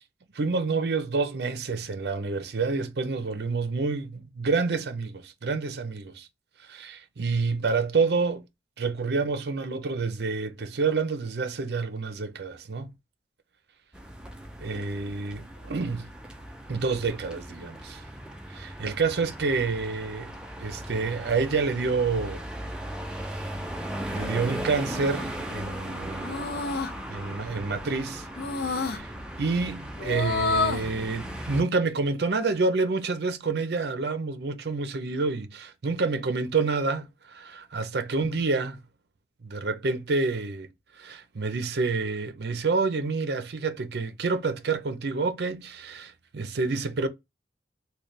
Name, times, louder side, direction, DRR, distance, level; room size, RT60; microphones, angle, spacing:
voice 1, 0.3-6.3 6.7-8.4 8.8-12.9 14.6-16.1 16.7-18.0 18.5-20.3 20.6-22.4 23.2-23.5 24.1-26.5 27.1-28.2 28.6-29.1 29.4-38.8 39.4-40.7 41.0-47.1, right 4 dB, 65° right, 0.5 m, -28 dB
sound 1, 13.9-31.6, equal, 5° right, 0.4 m, -38 dB
sound 2, 24.8-25.3 26.2-26.9 28.4-29.0 30.0-30.9, left 4 dB, 60° left, 0.5 m, -29 dB
3.2 x 2.2 x 3.9 m
head